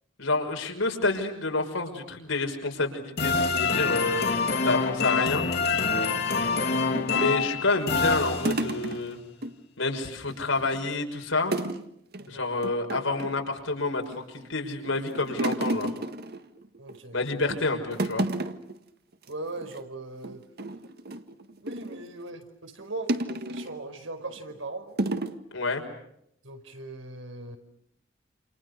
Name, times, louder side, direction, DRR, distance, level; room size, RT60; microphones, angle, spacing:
voice 1, 0.2-4.3 4.6-5.5 7.1-9.2 9.8-11.6 12.3-15.9 17.1-18.3 25.5-25.8, left 3 dB, 85° left, 3 dB, 5.8 m, -28 dB
sound 1, 3.2-8.9, left 4 dB, 55° left, 3.1 m, -26 dB
voice 2, 6.3-6.7 12.2-12.5 16.8-17.2 17.5-17.6 19.3-20.4 21.6-25.0 26.4-27.6, right 2 dB, 85° right, 6 dB, 5.1 m, -39 dB
sound 2, 6.9-9.5 9.8-10.0 10.3-10.9 11.5-11.9 12.1-12.3 12.6-13.4 14.0-14.5 14.8-17.0 17.4-17.6 17.9-18.8 19.1-19.3 19.6-19.8 20.2-22.0 23.1-23.8 24.4-24.5 25.0-25.4, right 1 dB, 55° right, 1.7 m, -32 dB
29.0 x 29.0 x 6.7 m, 0.73 s
head